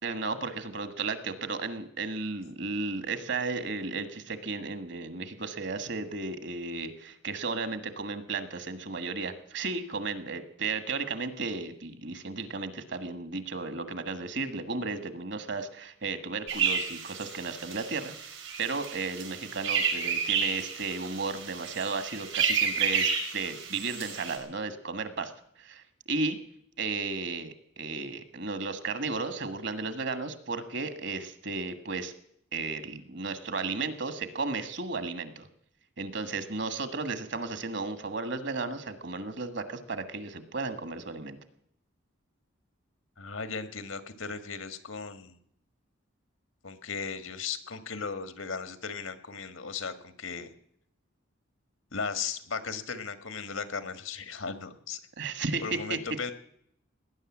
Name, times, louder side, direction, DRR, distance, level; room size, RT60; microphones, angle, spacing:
voice 1, 0.0-18.1 18.6-25.3 25.6-26.4 26.8-32.1 32.5-35.5 36.0-41.4 55.2-56.0, right 4 dB, 60° right, 11 dB, 1.6 m, -34 dB
sound 1, 16.5-24.4, right 6 dB, 85° right, 5.3 m, -31 dB
voice 2, 43.2-45.3 46.6-50.5 51.9-55.0 55.6-56.3, left 5 dB, 85° left, 11 dB, 1.7 m, -36 dB
18.5 x 10.5 x 7.3 m, 0.70 s
head